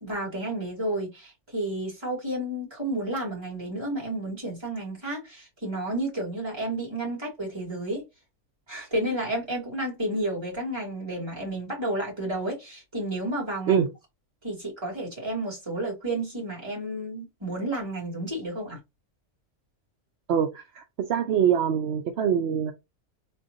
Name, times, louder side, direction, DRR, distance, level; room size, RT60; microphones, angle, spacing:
voice 1, 0.0-8.0 8.7-13.9 14.4-18.8, right 1 dB, 20° right, 2.3 m, -31 dB
voice 2, 20.3-22.7, right 8 dB, 60° right, 0.7 m, -24 dB
3.8 x 3.4 x 2.6 m
omnidirectional pair, 1.5 m